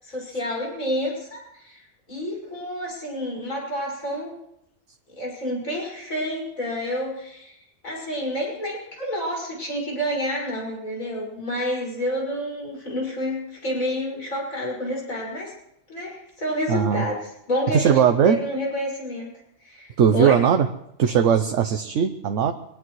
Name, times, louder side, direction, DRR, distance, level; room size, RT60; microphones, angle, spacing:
voice 1, 0.0-1.8 2.1-4.4 5.2-7.6 7.8-15.5 15.9-19.3 19.6-20.4, equal, 80° left, -3 dB, 6.4 m, -29 dB
voice 2, 16.7-17.0 17.7-18.4 20.0-20.7 21.0-22.5, right 8 dB, 65° right, 7 dB, 1.1 m, -19 dB
24.5 x 18.5 x 3.2 m, 0.79 s
omnidirectional pair, 1.4 m